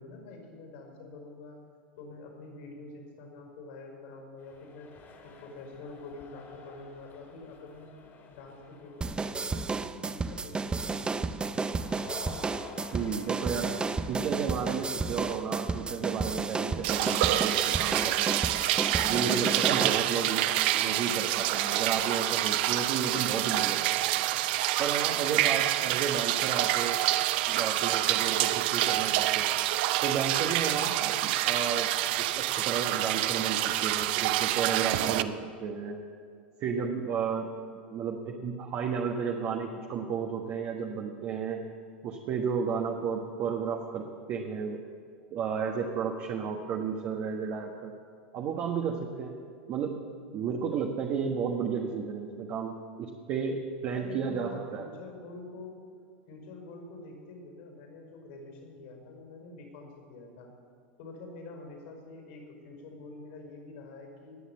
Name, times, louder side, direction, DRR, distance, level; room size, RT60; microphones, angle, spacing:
voice 1, 0.0-1.6 2.0-4.9 5.2-7.9 8.3-11.9 53.9-55.8 56.3-60.5 61.0-64.4, left 3 dB, 65° left, 2 dB, 5.1 m, -46 dB
sound 1, 4.4-23.6, left 4 dB, 40° left, 2.9 m, -50 dB
sound 2, 9.0-20.0, right 4 dB, 15° right, 0.5 m, -32 dB
voice 2, 12.9-13.7 14.1-18.4 19.0-23.9 24.8-27.0 27.5-29.6 30.0-31.9 32.3-35.3 35.6-36.0 36.6-37.5 37.9-41.6 42.0-44.8 45.3-47.9 48.3-49.3 49.7-50.0 50.3-54.9, right 6 dB, 45° right, 1 dB, 1.4 m, -32 dB
sound 3, 16.8-35.2, right 14 dB, 65° right, 0.5 m, -27 dB
19.5 x 7.3 x 7.4 m, 2.1 s
hypercardioid pair, 95°, 6 cm